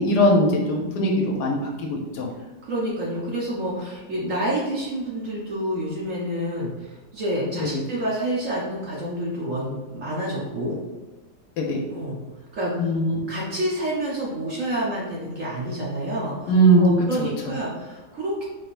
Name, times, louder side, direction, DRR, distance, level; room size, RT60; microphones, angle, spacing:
voice 1, 0.0-1.6 1.9-2.3 7.6-7.7 11.6-11.8 12.8-13.2 16.5-16.9 17.2-17.3, right 1 dB, 70° left, 0 dB, 1.1 m, -20 dB
voice 2, 0.5-0.9 2.6-10.8 11.9-12.2 12.5-12.9 13.3-16.5 16.8-18.4, right 1 dB, 60° right, -5 dB, 0.9 m, -28 dB
4.0 x 3.4 x 2.5 m, 1.2 s
omnidirectional pair, 2.0 m